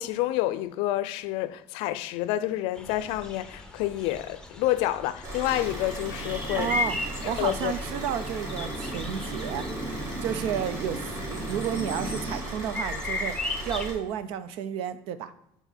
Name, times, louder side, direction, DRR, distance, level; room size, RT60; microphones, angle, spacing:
voice 1, 0.0-6.7 7.2-7.7, left 14 dB, 80° left, 0.4 m, -28 dB
sound 1, 2.7-13.8, left 3 dB, 10° left, 0.7 m, -37 dB
Car / Idling, 5.2-13.9, right 1 dB, 35° right, 1.9 m, -37 dB
sound 2, 5.4-12.4, right 1 dB, 20° right, 1.0 m, -38 dB
voice 2, 6.5-7.0 7.2-9.7 10.2-15.3, right 9 dB, 75° right, 0.5 m, -32 dB
5.8 x 4.1 x 4.1 m
cardioid pair, 145°, 9 cm